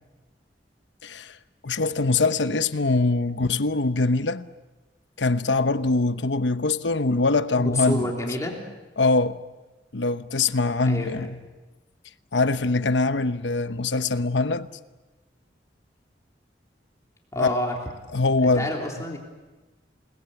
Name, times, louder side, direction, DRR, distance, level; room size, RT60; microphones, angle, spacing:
voice 1, 1.0-1.4 1.6-4.5 5.2-8.1 9.0-9.4 9.9-11.4 12.3-14.7 17.4-17.6 18.1-18.7, left 3 dB, 85° left, 1.0 m, -23 dB
voice 2, 7.5-8.6 10.8-11.3 17.3-17.7 18.4-19.2, left 1 dB, 20° left, 3.4 m, -28 dB
29.0 x 19.5 x 8.4 m
head